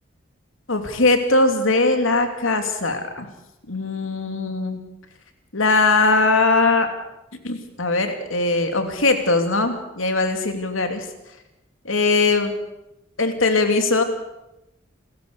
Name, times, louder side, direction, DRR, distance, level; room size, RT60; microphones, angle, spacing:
voice 1, 0.7-3.3 3.7-4.8 5.5-6.9 7.4-11.1 11.8-12.5 13.2-14.0, left 3 dB, 80° left, 6 dB, 3.0 m, -20 dB
28.5 x 14.5 x 6.9 m, 0.91 s
head